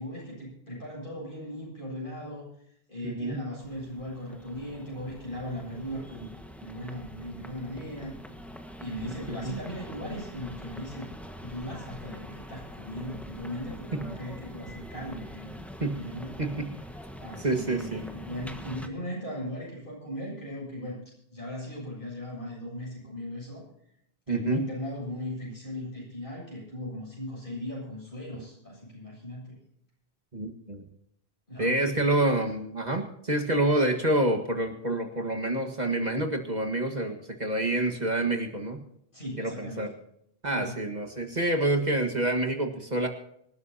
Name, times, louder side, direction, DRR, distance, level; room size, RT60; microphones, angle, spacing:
voice 1, 0.0-2.5 2.9-6.3 6.6-8.2 8.8-11.1 11.4-15.6 15.9-16.4 17.2-23.6 24.3-29.6 31.5-32.1 39.1-39.8 40.5-40.8, equal, 55° left, -4 dB, 8.1 m, -38 dB
voice 2, 3.0-3.4 9.4-9.5 13.9-14.0 15.8-16.0 16.4-16.7 17.4-18.0 24.3-24.6 30.3-30.8 31.6-38.8 39.4-39.9 40.4-43.1, right 1 dB, 45° right, 4 dB, 1.8 m, -27 dB
sound 1, 3.6-18.9, equal, ahead, 1.4 m, -44 dB
26.0 x 13.0 x 2.8 m, 0.72 s
omnidirectional pair, 1.0 m